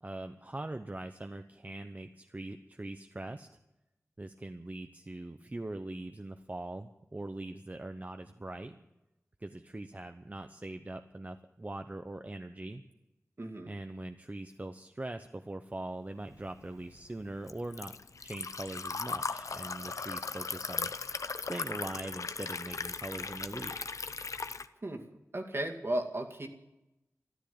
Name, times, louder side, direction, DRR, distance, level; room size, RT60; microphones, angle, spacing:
voice 1, 0.0-3.5 4.2-8.8 9.4-12.8 13.7-17.9 18.2-20.9 21.5-23.9, right 2 dB, 30° right, 7 dB, 0.8 m, -42 dB
voice 2, 13.4-13.7 24.8-25.1 25.3-26.5, right 1 dB, 50° right, 3 dB, 2.1 m, -35 dB
Liquid, 16.4-24.7, left 4 dB, 80° left, 0.7 m, -38 dB
13.5 x 12.5 x 8.6 m, 0.93 s
wide cardioid pair, 75°, 5 cm